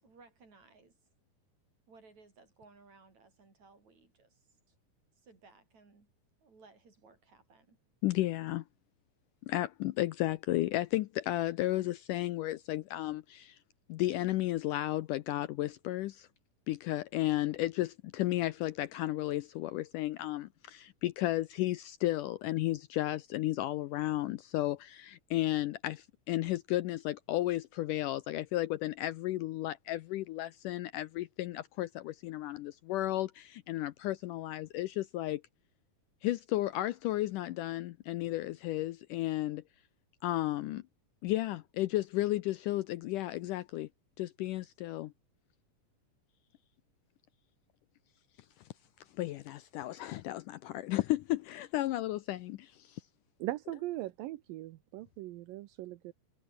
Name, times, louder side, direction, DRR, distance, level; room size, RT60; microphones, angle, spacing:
voice 1, 0.0-1.0 1.9-4.8 5.2-6.1 6.4-7.8, right 4 dB, 50° right, 7.2 m, -60 dB
voice 2, 8.0-8.6 9.5-13.6 13.9-16.3 16.7-35.4 36.2-39.6 40.2-40.8 41.2-43.9 44.2-45.1 49.2-53.0, left 16 dB, 75° left, 2.0 m, -33 dB
voice 3, 53.4-56.1, right 16 dB, 80° right, 2.5 m, -39 dB
omnidirectional pair, 4.2 m